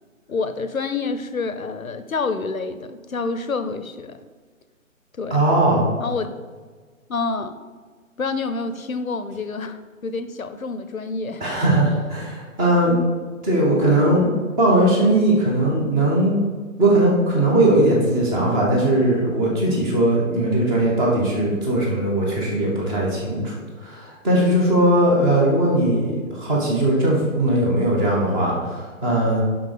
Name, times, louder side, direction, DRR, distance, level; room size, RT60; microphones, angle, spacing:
voice 1, 0.3-4.2 5.2-5.4 6.0-6.3 7.1-7.6 8.2-11.5, left 4 dB, 80° left, 10 dB, 0.8 m, -28 dB
voice 2, 5.3-5.9 11.4-13.0 13.4-16.3 16.8-23.6 23.8-29.4, right 1 dB, 10° right, -3 dB, 1.0 m, -19 dB
7.1 x 5.7 x 5.0 m, 1.5 s
figure-of-eight pair, 135°, 41 cm